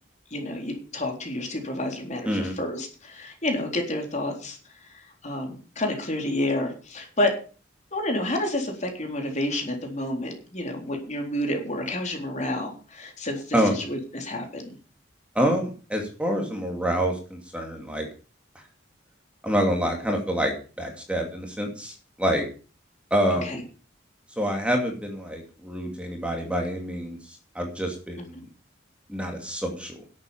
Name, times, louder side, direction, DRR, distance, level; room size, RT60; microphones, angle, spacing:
voice 1, 0.3-7.4 7.9-14.7 23.4-23.6 28.2-28.4, left 1 dB, 40° left, 3 dB, 3.8 m, -30 dB
voice 2, 15.3-18.1 19.4-22.4 23.1-23.6 24.4-27.2 27.5-28.4 29.1-30.0, equal, 5° right, 2 dB, 2.5 m, -27 dB
11.5 x 8.5 x 7.0 m, 0.37 s
head